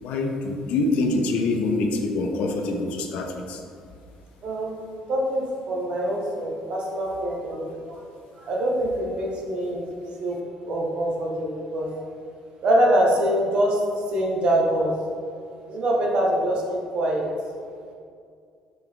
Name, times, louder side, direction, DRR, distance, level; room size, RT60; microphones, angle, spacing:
voice 1, 0.0-3.6, left 2 dB, 70° left, 3 dB, 0.4 m, -25 dB
voice 2, 4.4-4.8 5.1-8.0 8.4-9.9 10.2-10.4 10.6-11.9 12.6-13.8 14.1-14.9 15.7-17.3, right 1 dB, 50° right, -1 dB, 0.7 m, -24 dB
3.6 x 3.4 x 3.3 m, 2.3 s
cardioid pair, 140°, 2 cm